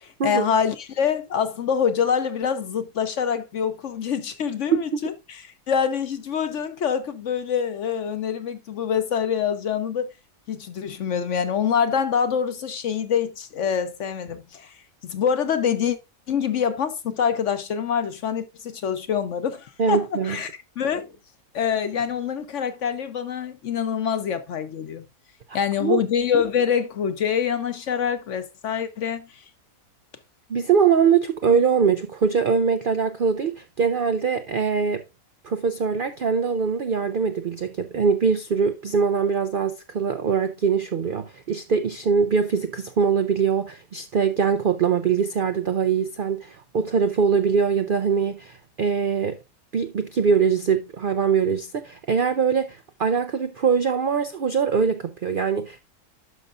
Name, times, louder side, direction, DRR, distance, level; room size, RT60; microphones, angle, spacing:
voice 1, 0.0-10.1 10.5-14.7 15.0-16.0 16.3-20.5 20.8-21.1 21.5-25.0 25.5-29.4, left 7 dB, 55° left, 1.0 m, -25 dB
voice 2, 19.8-20.4 25.5-26.0 30.5-35.0 35.4-49.4 49.7-55.8, right 6 dB, 85° right, 0.4 m, -22 dB
11.5 x 5.5 x 2.5 m
omnidirectional pair, 1.7 m